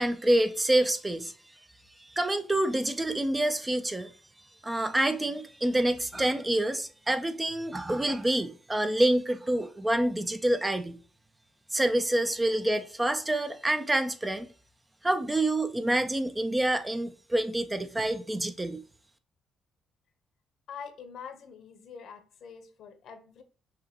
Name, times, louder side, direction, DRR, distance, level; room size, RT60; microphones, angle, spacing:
voice 1, 0.0-1.3 2.0-4.1 4.6-11.0 11.7-14.5 15.0-18.8, right 1 dB, 15° right, 0.5 m, -27 dB
voice 2, 20.7-23.4, left 6 dB, 70° left, 0.8 m, -45 dB
5.9 x 2.9 x 2.9 m
cardioid pair, 90°, 0 cm